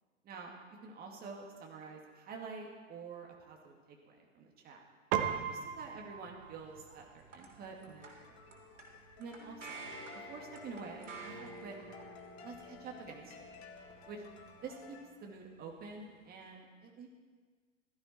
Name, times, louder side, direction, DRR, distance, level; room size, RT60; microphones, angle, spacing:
voice 1, 0.8-4.8 5.5-8.1 9.2-10.0 10.3-11.8 12.4-13.5 14.1-14.2 14.6-17.1, right 4 dB, 25° right, 1 dB, 2.1 m, -48 dB
Piano, 5.1-14.7, right 9 dB, 45° right, 1.0 m, -43 dB
sound 1, 6.4-16.5, right 2 dB, 70° right, 3.2 m, -52 dB
sound 2, 7.9-15.1, left 6 dB, 55° left, 1.6 m, -55 dB
16.0 x 13.0 x 4.4 m, 1.5 s
figure-of-eight pair, 100°, 39 cm